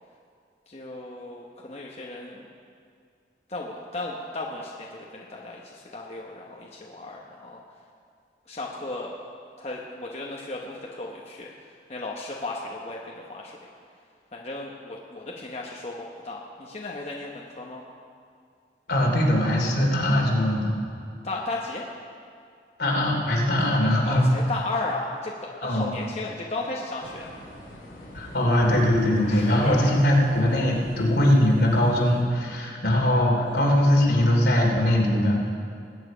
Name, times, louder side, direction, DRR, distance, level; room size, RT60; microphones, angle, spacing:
voice 1, 0.7-2.5 3.5-7.6 8.5-9.1 9.6-13.6 14.3-17.8 21.2-21.9 24.0-27.3 29.2-30.0 33.3-34.0, left 2 dB, 35° left, -2 dB, 1.0 m, -35 dB
voice 2, 18.9-20.7 22.8-24.2 25.6-25.8 28.1-35.5, left 1 dB, 75° left, -1 dB, 2.8 m, -21 dB
sound 1, 27.0-32.2, equal, 55° left, 4.2 m, -44 dB
21.0 x 8.9 x 5.0 m, 2.3 s
head